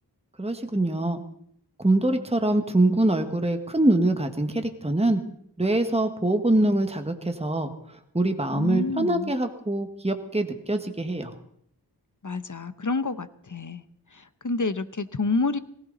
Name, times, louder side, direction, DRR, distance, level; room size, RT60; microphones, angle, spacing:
voice 1, 0.4-1.2 1.8-5.2 5.6-7.7 8.1-11.3, right 1 dB, 15° right, 7 dB, 1.6 m, -24 dB
voice 2, 8.5-9.3 12.2-13.8 14.1-15.6, left 3 dB, 45° left, 13 dB, 1.0 m, -28 dB
19.0 x 17.5 x 4.0 m, 0.66 s
wide cardioid pair, 55°, 42 cm